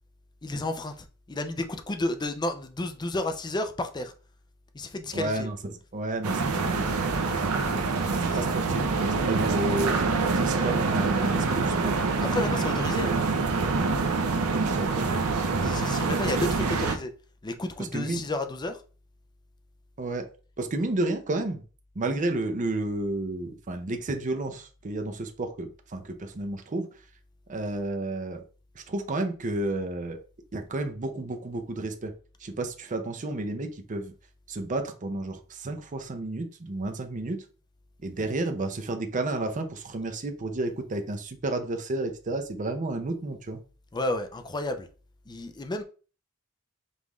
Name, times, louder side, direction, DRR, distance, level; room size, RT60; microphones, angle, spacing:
voice 1, 0.4-4.1 4.7-5.5 7.3-7.5 12.2-13.1 15.6-17.1 17.4-18.8 43.9-44.9 45.3-45.8, left 2 dB, 20° left, 0.5 m, -31 dB
voice 2, 5.1-6.9 7.4-7.9 8.2-9.9 10.3-12.0 14.6-15.7 16.2-16.7 17.9-18.2 20.0-20.3 20.6-21.6 22.0-26.9 27.5-28.4 28.8-30.2 30.5-32.1 32.4-34.1 34.5-37.4 38.0-43.6, right 2 dB, 35° right, 0.6 m, -31 dB
sound 1, 6.2-17.0, right 4 dB, 85° right, 0.7 m, -26 dB
5.3 x 2.5 x 3.1 m
head